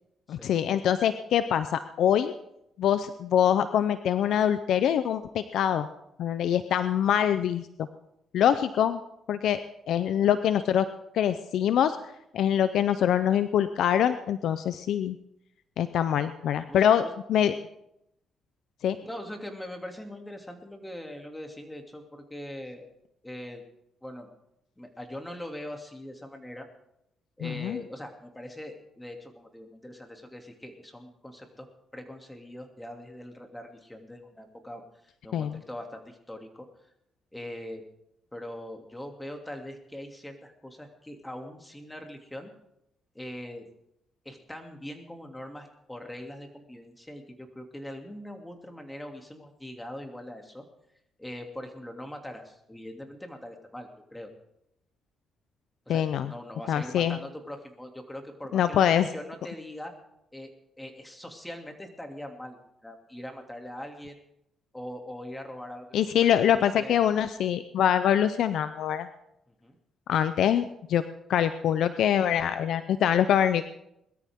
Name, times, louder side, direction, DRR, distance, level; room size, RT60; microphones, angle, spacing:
voice 1, 0.3-2.3 2.8-5.9 6.2-7.9 8.3-9.0 9.3-9.6 9.9-10.8 11.1-12.0 12.3-15.2 15.8-17.5 18.8-19.0 27.4-27.8 35.3-35.5 55.9-56.3 56.7-57.2 58.5-59.1 65.9-69.1 70.1-71.0 71.3-73.6, left 9 dB, 75° left, 12 dB, 0.6 m, -24 dB
voice 2, 16.7-17.1 19.0-22.9 23.2-23.6 24.0-24.3 24.8-26.7 27.4-31.7 31.9-36.7 37.3-37.8 38.3-42.5 43.1-43.7 44.2-50.6 51.2-54.3 55.9-59.9 60.3-60.5 60.8-64.2 64.7-67.0 69.5-69.7, left 1 dB, 10° left, 3 dB, 2.7 m, -42 dB
21.5 x 13.0 x 3.7 m, 0.82 s
cardioid pair, 90°, 0 cm